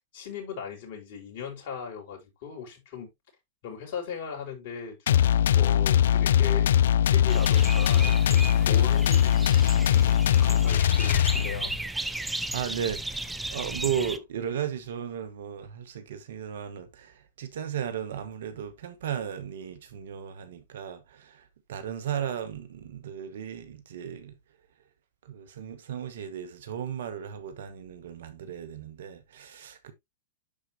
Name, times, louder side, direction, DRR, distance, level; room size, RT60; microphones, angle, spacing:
voice 1, 0.1-3.1 3.6-5.3 5.5-6.7 7.0-11.7, left 6 dB, 55° left, 5.9 m, -38 dB
sound 1, 5.1-11.8, left 10 dB, 75° left, 0.4 m, -21 dB
sound 2, 7.3-14.2, right 2 dB, 5° right, 0.9 m, -35 dB
voice 2, 12.5-24.4 25.3-29.9, right 8 dB, 75° right, 1.9 m, -35 dB
10.5 x 4.9 x 3.0 m
hypercardioid pair, 115°, 0 cm